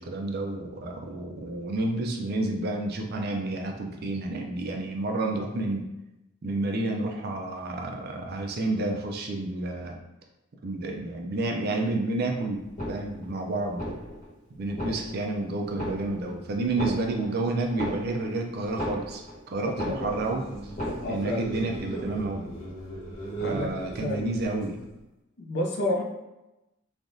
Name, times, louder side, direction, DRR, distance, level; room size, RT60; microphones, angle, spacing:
voice 1, 0.0-5.8 6.4-10.0 10.6-12.6 12.9-14.0 14.6-20.5 21.1-22.5 23.4-24.8, right 2 dB, 45° right, 2 dB, 0.4 m, -30 dB
sound 1, 12.6-13.4 13.7-14.3 14.6-15.4 15.7-16.4 16.6-19.4 19.7-20.4 20.6-21.4 21.7-21.8, equal, 30° left, 1.1 m, -35 dB
voice 2, 19.6-20.2 21.0-21.5 23.4-23.7 24.0-24.3 25.4-26.0, left 1 dB, 50° left, 0 dB, 0.5 m, -30 dB
sound 2, 19.9-25.0, right 2 dB, 80° left, 1.2 m, -38 dB
3.3 x 2.4 x 2.6 m, 0.97 s
head